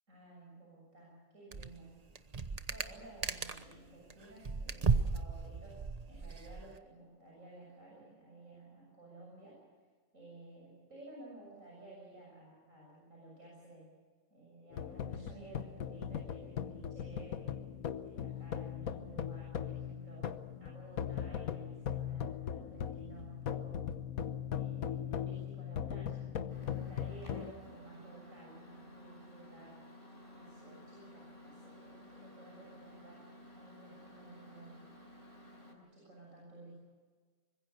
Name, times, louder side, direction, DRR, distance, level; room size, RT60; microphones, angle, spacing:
voice 1, 0.1-2.1 2.7-9.6 10.1-13.9 14.3-17.6 18.0-23.9 24.5-29.8 30.3-34.9 35.6-36.8, right 2 dB, 60° right, -4 dB, 7.3 m, -54 dB
sound 1, 1.5-1.8 2.1-3.8 4.1-6.8, right 5 dB, 30° right, 0.9 m, -35 dB
sound 2, 14.7-27.5, left 9 dB, 70° left, 1.4 m, -39 dB
Microwave oven, 26.5-35.7, left 1 dB, 35° left, 5.1 m, -55 dB
25.0 x 21.5 x 6.7 m, 1.5 s
omnidirectional pair, 1.6 m